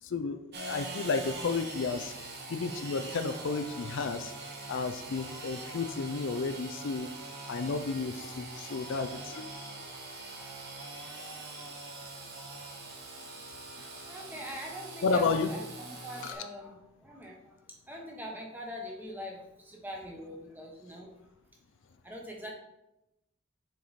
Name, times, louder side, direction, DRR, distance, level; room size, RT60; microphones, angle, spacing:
voice 1, 0.0-4.3 4.7-7.1 7.5-9.5 15.0-15.5 16.2-16.5, left 4 dB, 55° left, 8 dB, 0.4 m, -32 dB
Engine / Sawing, 0.5-16.3, right 2 dB, 45° right, 1.1 m, -43 dB
voice 2, 13.7-17.6 17.9-21.1 22.0-22.5, equal, 10° right, 0 dB, 1.0 m, -43 dB
6.7 x 4.8 x 4.1 m, 0.91 s
head